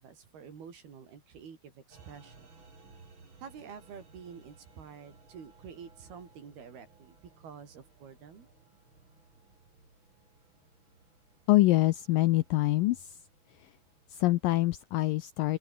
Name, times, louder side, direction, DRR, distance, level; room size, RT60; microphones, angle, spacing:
voice 1, 0.0-2.5 3.4-8.5, right 7 dB, 70° right, 5.9 m, -48 dB
sound 1, 1.9-14.5, right 4 dB, 30° right, 4.8 m, -59 dB
voice 2, 11.5-13.2 13.6-13.7 14.1-15.6, left 17 dB, 80° left, 2.0 m, -25 dB
open air
omnidirectional pair, 4.7 m